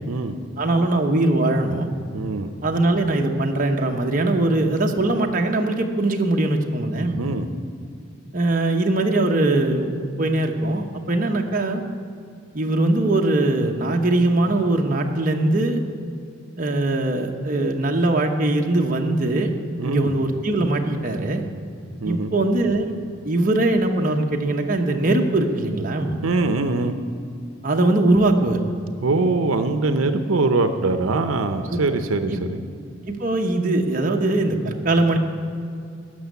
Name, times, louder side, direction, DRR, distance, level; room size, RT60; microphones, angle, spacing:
voice 1, 0.1-0.4 2.1-2.5 7.2-7.5 19.8-20.2 22.0-22.3 26.2-26.9 29.0-32.6, right 3 dB, 90° right, 8 dB, 0.7 m, -22 dB
voice 2, 0.6-1.9 2.6-7.2 8.3-11.8 12.5-15.8 16.6-19.5 19.8-21.4 22.0-23.0 23.2-26.2 27.6-28.6 31.7-31.8 32.3-32.4 33.1-35.2, right 2 dB, 40° right, 2 dB, 0.9 m, -21 dB
12.5 x 6.3 x 9.3 m, 2.4 s
head